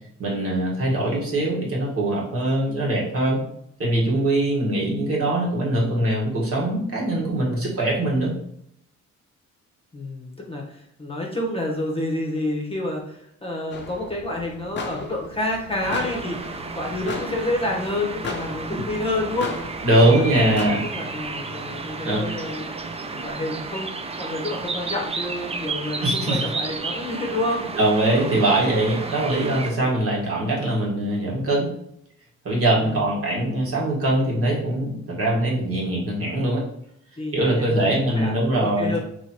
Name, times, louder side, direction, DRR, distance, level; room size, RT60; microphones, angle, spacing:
voice 1, 0.2-3.4 3.8-8.3 18.7-18.8 19.8-20.8 22.0-22.2 26.0-26.5 27.7-31.7 32.4-36.6 37.3-39.0, right 1 dB, 50° right, -4 dB, 1.6 m, -22 dB
voice 2, 9.9-19.6 20.3-22.6 23.0-27.6 28.3-28.6 29.8-30.1 32.8-33.0 37.2-39.0, left 1 dB, 20° left, -1 dB, 1.0 m, -29 dB
sound 1, 13.7-20.7, left 5 dB, 35° left, 0.6 m, -37 dB
sound 2, 15.8-29.7, right 3 dB, 20° right, 0.4 m, -32 dB
3.1 x 3.0 x 4.2 m, 0.72 s
cardioid pair, 90°, 30 cm